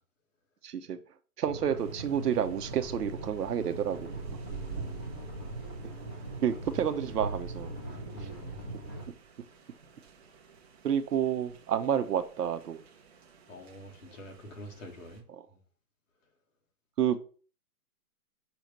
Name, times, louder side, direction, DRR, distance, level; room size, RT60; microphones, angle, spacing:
voice 1, 0.6-1.0 1.4-4.2 6.4-7.7 10.8-12.8 17.0-17.2, right 9 dB, 80° right, 0.9 m, -29 dB
sound 1, 1.4-9.1, right 2 dB, 10° left, 0.7 m, -41 dB
sound 2, 1.8-15.2, right 5 dB, 40° right, 1.1 m, -49 dB
voice 2, 3.9-5.2 8.1-8.8 13.5-15.6, equal, 55° left, 1.8 m, -48 dB
6.3 x 3.0 x 5.2 m
hypercardioid pair, 170°, 47 cm